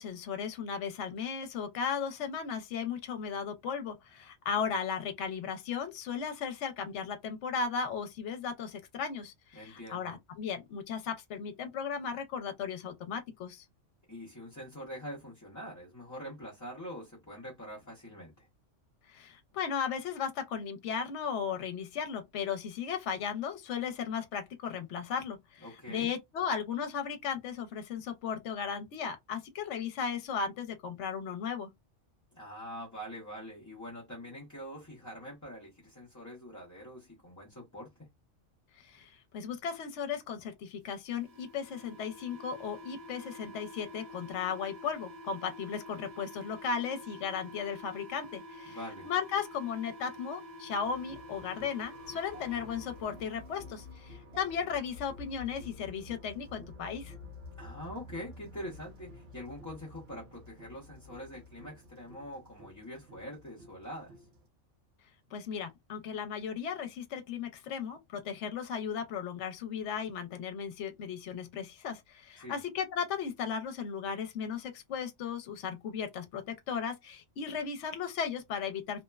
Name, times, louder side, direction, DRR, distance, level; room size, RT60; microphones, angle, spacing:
voice 1, 0.0-13.6 19.1-31.7 38.7-48.8 49.0-57.1 65.3-79.0, left 7 dB, 70° left, 0.9 m, -36 dB
voice 2, 9.5-10.2 14.1-18.5 25.6-26.1 32.3-38.1 48.7-49.1 57.6-64.3 72.4-72.6, equal, 20° left, 0.6 m, -44 dB
sound 1, 41.2-53.2, left 1 dB, 45° right, 0.7 m, -48 dB
sound 2, 50.8-64.5, left 2 dB, 70° right, 1.1 m, -51 dB
2.8 x 2.1 x 2.2 m
omnidirectional pair, 1.3 m